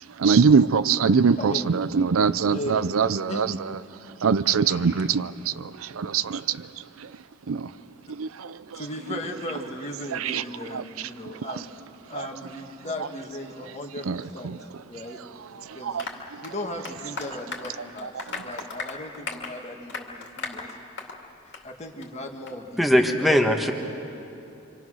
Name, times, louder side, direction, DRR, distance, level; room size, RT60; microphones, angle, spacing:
voice 1, 0.2-3.5 4.2-5.7 5.9-6.6 7.5-7.7 8.2-8.8 10.1-10.4 10.7-10.8 14.1-14.6 15.8-16.0, right 5 dB, 85° right, 0.5 m, -22 dB
voice 2, 1.3-1.7 2.4-3.0 3.3-3.6 4.6-5.2 8.7-11.7 12.1-14.6 14.9-15.2 15.7-16.0 16.4-18.1 18.4-20.8 21.5-22.8 23.2-23.4, left 1 dB, 30° left, 1.8 m, -37 dB
Applause, 16.0-21.2 21.5-21.7 22.0-22.1 22.5-22.6, left 4 dB, 55° left, 2.4 m, -37 dB
voice 3, 22.8-23.7, equal, ahead, 1.4 m, -20 dB
27.0 x 25.5 x 6.3 m
head